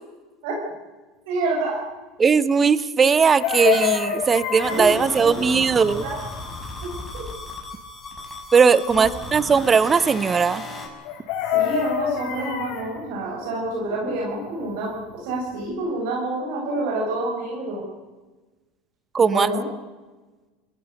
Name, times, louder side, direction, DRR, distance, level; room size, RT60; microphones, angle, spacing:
voice 1, 1.3-1.8 4.7-5.4 5.7-6.2 9.0-9.1 11.5-17.8 19.3-19.6, right 2 dB, 75° right, -2 dB, 7.6 m, -28 dB
voice 2, 2.2-6.0 8.5-10.6 19.1-19.5, right 5 dB, 20° right, 16 dB, 1.0 m, -18 dB
Chicken rooster, 3.2-5.0 11.0-12.9 15.1-15.2 15.5-15.7, left 9 dB, 55° left, 7.1 m, -25 dB
sound 1, 4.6-10.9, left 2 dB, 10° left, 6.6 m, -35 dB
30.0 x 16.5 x 6.7 m, 1.2 s
supercardioid pair, 130°, 0 cm